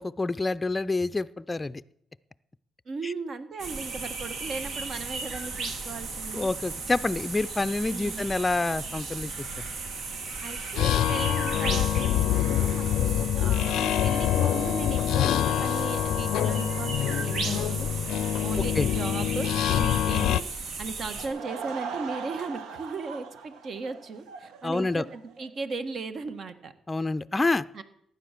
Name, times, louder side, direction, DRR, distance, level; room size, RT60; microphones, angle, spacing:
voice 1, 0.0-1.8 3.0-3.1 6.3-9.7 18.6-18.9 24.6-25.0 26.9-27.6, left 3 dB, 20° left, 13 dB, 0.5 m, -28 dB
voice 2, 2.8-6.5 7.9-8.3 10.4-17.9 18.4-20.4 20.8-26.7 27.7-27.8, right 4 dB, 55° right, 10 dB, 1.5 m, -37 dB
sound 1, 3.6-21.3, right 4 dB, 70° right, 2.5 m, -36 dB
sound 2, 10.8-20.4, left 11 dB, 85° left, 0.4 m, -25 dB
Laughter / Crowd, 21.0-25.5, right 5 dB, 90° right, 1.3 m, -40 dB
15.0 x 10.0 x 6.7 m, 0.73 s
cardioid pair, 90°, 0 cm